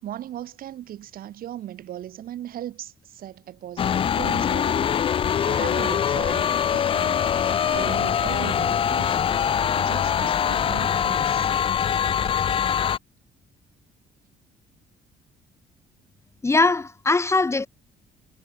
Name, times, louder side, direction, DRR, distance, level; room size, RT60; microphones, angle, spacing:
voice 1, 0.0-5.0 5.4-9.4 9.8-11.5, right 12 dB, 60° right, 6.8 m, -38 dB
sound 1, 3.8-13.0, left 8 dB, 35° left, 0.5 m, -23 dB
voice 2, 16.4-17.7, left 3 dB, 15° left, 2.8 m, -21 dB
cardioid pair, 130°, 17 cm